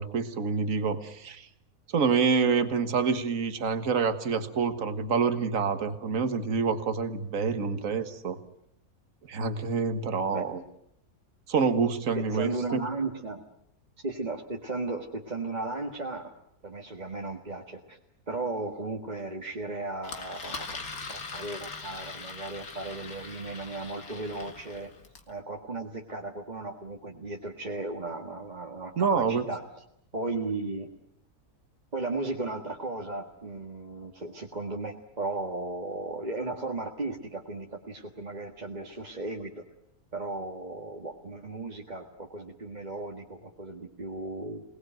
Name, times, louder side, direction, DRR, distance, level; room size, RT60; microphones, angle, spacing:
voice 1, 0.0-1.5 1.9-8.4 9.3-10.6 11.5-12.8 29.0-29.5, right 5 dB, 60° right, 10 dB, 2.0 m, -27 dB
voice 2, 12.2-13.4 14.0-16.3 16.6-18.0 18.3-20.8 21.1-24.9 25.3-29.6 30.1-30.9 31.9-39.6 40.1-44.6, right 2 dB, 30° right, 1 dB, 1.8 m, -35 dB
Engine, 20.0-25.3, left 4 dB, 70° left, 2.6 m, -41 dB
27.5 x 19.5 x 9.1 m, 0.76 s
omnidirectional pair, 1.6 m